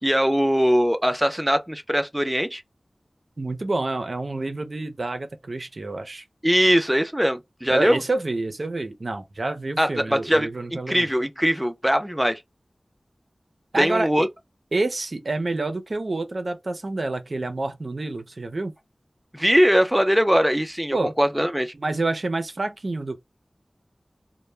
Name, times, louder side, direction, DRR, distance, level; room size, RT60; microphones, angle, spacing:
voice 1, 0.0-2.6 6.4-8.0 9.8-12.4 13.8-14.3 19.3-21.7, equal, 5° right, 0.4 m, -21 dB
voice 2, 3.4-6.2 7.7-11.1 13.7-14.3 14.7-18.7 20.9-21.1 21.7-23.2, right 2 dB, 65° right, 0.5 m, -28 dB
2.1 x 2.0 x 3.1 m
wide cardioid pair, 50°, 0 cm